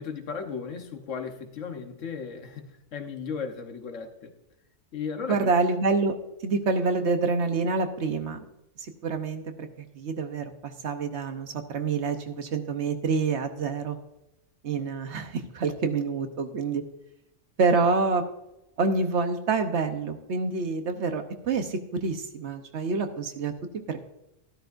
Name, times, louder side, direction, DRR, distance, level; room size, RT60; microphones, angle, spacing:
voice 1, 0.0-4.4 4.9-5.5, left 6 dB, 90° left, 6 dB, 1.5 m, -36 dB
voice 2, 5.3-6.1 6.4-8.4 9.0-14.0 14.6-16.8 17.6-18.2 18.8-24.0, right 4 dB, 70° right, 7 dB, 1.2 m, -27 dB
13.0 x 12.5 x 2.6 m, 0.88 s
omnidirectional pair, 1.2 m